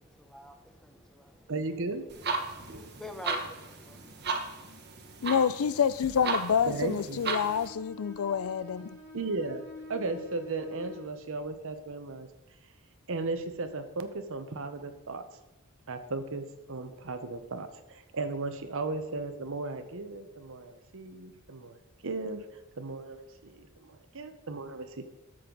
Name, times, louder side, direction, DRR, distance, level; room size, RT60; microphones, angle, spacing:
voice 1, 0.0-1.5 2.4-4.3, left 1 dB, ahead, 0.9 m, -48 dB
voice 2, 1.5-2.0 6.7-7.2 9.1-9.6 9.9-12.3 13.1-15.2 15.9-22.4 22.8-25.0, right 3 dB, 65° right, 1.0 m, -36 dB
sound 1, 2.1-7.7, right 3 dB, 50° right, 1.2 m, -35 dB
voice 3, 5.2-8.9, left 7 dB, 70° left, 0.4 m, -27 dB
Bowed string instrument, 7.4-11.1, left 2 dB, 50° left, 3.5 m, -47 dB
12.5 x 7.6 x 3.9 m
head